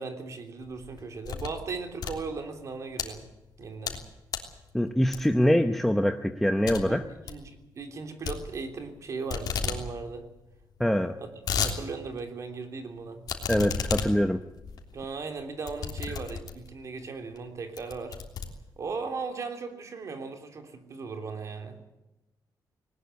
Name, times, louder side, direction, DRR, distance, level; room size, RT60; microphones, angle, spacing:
voice 1, 0.0-3.3 3.6-4.0 6.9-10.2 11.2-11.3 11.6-13.2 14.9-18.2 18.8-21.8, right 4 dB, 45° right, 6 dB, 3.2 m, -37 dB
sound 1, 0.7-1.6 1.9-3.1 3.6-4.0 4.3-4.6 5.1-5.5 5.9-6.0 6.3-6.4 6.7-6.8 7.1-7.4 8.2-9.0 9.3-9.8 10.1-10.2 10.4-10.5 11.1-11.8 12.2-12.3 13.3-16.8 17.3-17.4 17.8-19.0, left 6 dB, 60° left, 3.3 m, -33 dB
voice 2, 4.7-7.0 10.8-11.2 13.5-14.4, equal, 5° left, 7 dB, 0.8 m, -24 dB
20.0 x 19.5 x 8.2 m, 0.98 s
wide cardioid pair, 170°, 8 cm